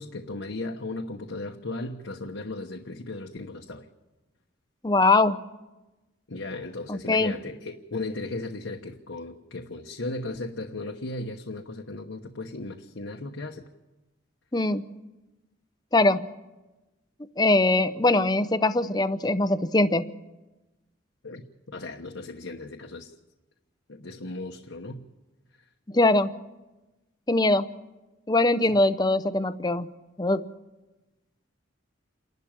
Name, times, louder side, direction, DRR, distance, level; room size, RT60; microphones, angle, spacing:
voice 1, 0.0-3.9 6.3-13.6 21.2-21.4 21.7-23.1 23.9-25.0 28.7-28.8, left 2 dB, 75° left, 1.1 m, -36 dB
voice 2, 4.8-5.4 6.9-7.3 14.5-14.8 15.9-16.3 17.4-20.1 25.9-26.3 27.3-27.7 28.3-29.9 30.2-30.5, left 2 dB, 20° left, 0.7 m, -22 dB
28.5 x 12.5 x 9.0 m
head